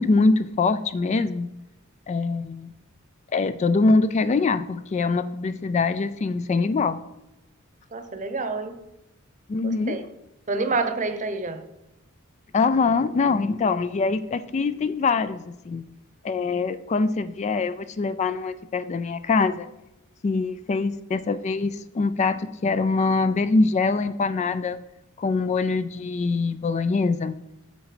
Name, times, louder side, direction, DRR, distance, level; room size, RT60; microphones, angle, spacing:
voice 1, 0.0-1.5 2.1-2.7 3.3-7.0 9.5-10.0 12.5-15.8 16.2-19.7 20.2-24.8 25.2-27.3, left 4 dB, 35° left, 0.3 m, -23 dB
voice 2, 7.9-8.7 9.6-10.0 10.5-11.6, right 3 dB, 35° right, 0.9 m, -28 dB
8.1 x 7.3 x 5.0 m
head